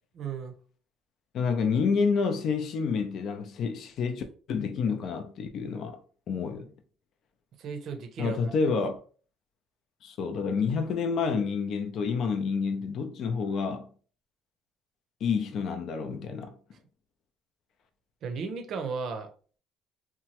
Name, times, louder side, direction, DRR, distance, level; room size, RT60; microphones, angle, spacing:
voice 1, 0.1-0.5 7.6-8.5 18.2-19.3, right 5 dB, 60° right, 0.6 m, -35 dB
voice 2, 1.3-6.0 6.3-6.7 8.2-8.9 10.0-13.9 15.2-16.5, left 5 dB, 60° left, 0.5 m, -29 dB
2.9 x 2.2 x 2.9 m
supercardioid pair, 90°, 0 cm